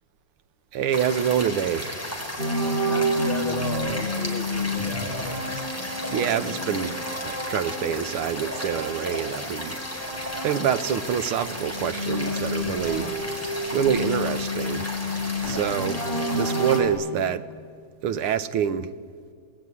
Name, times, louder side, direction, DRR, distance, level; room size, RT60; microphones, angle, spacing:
voice 1, 0.7-1.9 6.1-7.0 7.2-9.8 10.4-13.2 13.7-14.9 15.5-16.0 16.3-17.5 18.0-18.9, right 8 dB, 90° right, 1.9 m, -26 dB
sound 1, 0.9-16.8, left 1 dB, 5° left, 4.1 m, -34 dB
sound 2, 2.4-11.0 11.3-16.9, equal, 25° right, 6.5 m, -30 dB
voice 2, 2.8-5.5 5.7-7.0, left 3 dB, 30° left, 1.4 m, -35 dB
26.5 x 20.5 x 9.7 m
omnidirectional pair, 2.3 m